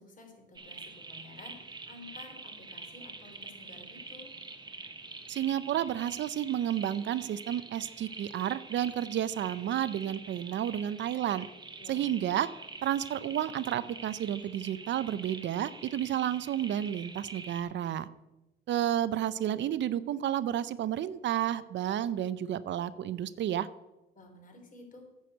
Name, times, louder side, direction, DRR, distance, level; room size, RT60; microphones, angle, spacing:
voice 1, 0.0-4.3 11.8-12.1 24.1-25.1, left 2 dB, 40° left, 2 dB, 3.6 m, -52 dB
sound 1, 0.5-17.6, right 3 dB, 20° right, 1.1 m, -46 dB
voice 2, 5.3-11.5 11.9-12.5 12.8-18.1 18.7-23.7, right 11 dB, 65° right, 16 dB, 0.5 m, -31 dB
9.2 x 6.4 x 7.7 m, 1.0 s
cardioid pair, 90°, 20 cm